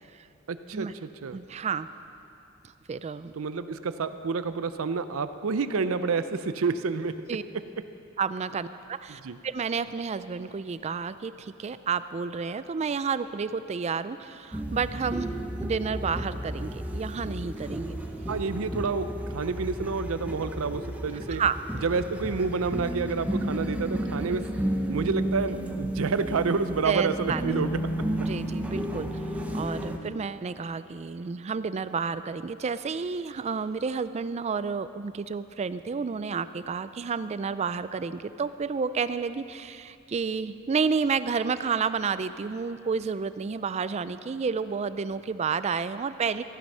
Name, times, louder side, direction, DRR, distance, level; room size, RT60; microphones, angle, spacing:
voice 1, 0.5-1.4 3.3-7.1 9.2-9.4 18.3-19.1 19.3-21.4 21.8-24.4 24.9-27.8, right 4 dB, 80° right, 12 dB, 0.5 m, -29 dB
voice 2, 1.3-1.9 2.9-3.3 7.3-7.4 8.2-18.0 21.3-21.6 26.8-27.6 28.2-46.4, right 5 dB, 30° right, 14 dB, 0.3 m, -30 dB
sound 1, 14.5-30.0, equal, 5° right, 0.7 m, -32 dB
14.5 x 10.5 x 5.5 m, 2.6 s
head